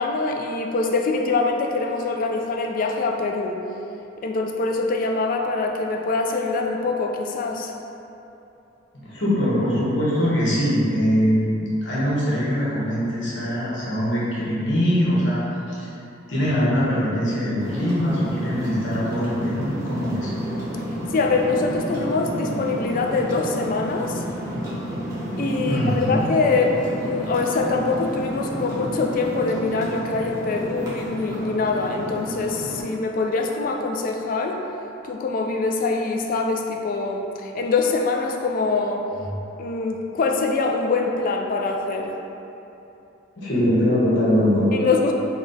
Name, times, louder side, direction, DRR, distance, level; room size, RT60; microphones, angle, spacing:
voice 1, 0.0-3.6 4.2-7.7 21.1-24.2 25.4-34.6 35.0-39.0 39.6-42.1 44.7-45.1, left 3 dB, 45° left, 2 dB, 0.3 m, -24 dB
voice 2, 8.9-15.4 15.7-15.9 16.3-20.3 25.7-26.2 43.4-44.7, equal, 65° left, -8 dB, 1.1 m, -22 dB
sound 1, 17.6-32.8, equal, 20° right, 0.9 m, -31 dB
4.0 x 2.2 x 3.9 m, 2.9 s
head